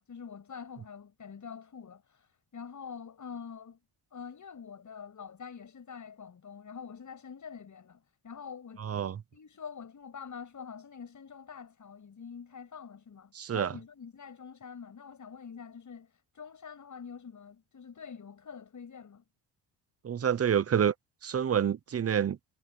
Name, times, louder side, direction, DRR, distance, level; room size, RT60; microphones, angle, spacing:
voice 1, 0.0-3.8 4.1-8.9 9.3-19.2, left 6 dB, 45° left, 7.6 m, -46 dB
voice 2, 8.8-9.2 13.3-13.7 20.0-20.9 21.2-22.4, right 8 dB, 35° right, 0.9 m, -28 dB
cardioid pair, 90°, 40 cm